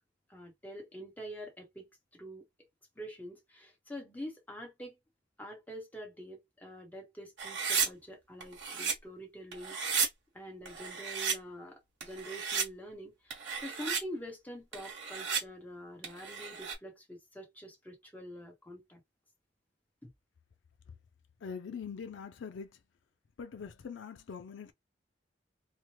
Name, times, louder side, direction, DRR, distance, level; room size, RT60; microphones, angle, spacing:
voice 1, 0.3-2.4 3.0-5.0 5.4-9.8 10.3-19.0 20.0-20.1, equal, 10° left, 1.0 m, -46 dB
sound 1, 7.4-7.9 8.4-8.9 9.5-10.1 10.7-11.4 12.0-12.7 13.3-14.0 14.7-15.4 16.0-16.7, right 6 dB, 70° right, 1.1 m, -33 dB
voice 2, 21.4-22.7 23.4-24.7, left 6 dB, 75° left, 0.4 m, -43 dB
3.0 x 2.1 x 2.9 m
head